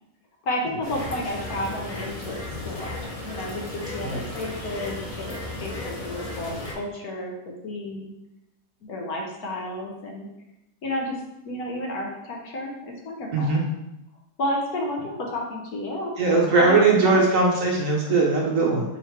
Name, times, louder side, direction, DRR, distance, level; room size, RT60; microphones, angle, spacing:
voice 1, 0.4-8.1 8.8-10.3 10.8-11.2 11.4-13.6 14.4-16.2 16.5-17.4, left 1 dB, 65° left, 0 dB, 1.3 m, -32 dB
sound 1, 0.8-6.7, left 2 dB, 40° left, 0.5 m, -35 dB
voice 2, 16.2-18.8, right 3 dB, 60° right, -1 dB, 1.0 m, -20 dB
3.8 x 2.9 x 4.5 m, 0.88 s
omnidirectional pair, 1.8 m